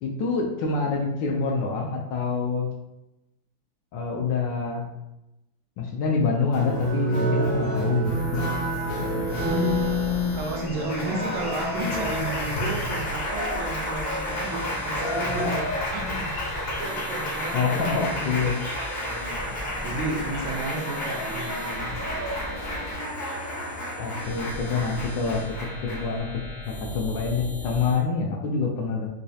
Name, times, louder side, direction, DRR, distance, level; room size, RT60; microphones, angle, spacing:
voice 1, 0.0-2.7 3.9-4.9 5.8-8.4 17.5-18.5 24.0-25.4 25.8-26.3 26.7-29.1, left 4 dB, 75° left, 0 dB, 1.1 m, -26 dB
Applause, 6.5-26.2, equal, 50° left, 0.7 m, -30 dB
sound 1, 8.0-28.0, left 1 dB, 10° right, 0.5 m, -38 dB
voice 2, 9.4-21.9, left 1 dB, 75° right, 1 dB, 1.3 m, -32 dB
4.1 x 2.3 x 2.7 m, 0.90 s
omnidirectional pair, 2.4 m